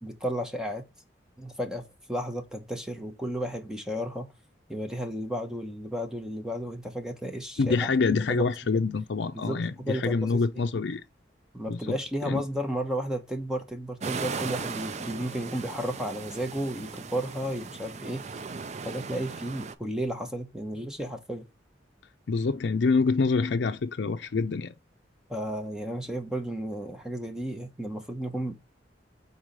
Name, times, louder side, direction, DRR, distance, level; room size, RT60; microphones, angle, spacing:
voice 1, 0.0-0.8 1.4-1.8 2.1-4.3 4.7-7.8 8.3-8.5 9.3-10.4 11.5-18.2 18.8-21.4 25.3-28.5, equal, 5° right, 1.0 m, -33 dB
voice 2, 7.6-11.0 11.7-12.0 12.3-12.4 22.3-24.7, left 4 dB, 75° left, 0.5 m, -26 dB
sound 1, 14.0-19.7, right 5 dB, 40° right, 0.5 m, -37 dB
4.8 x 4.0 x 5.3 m
head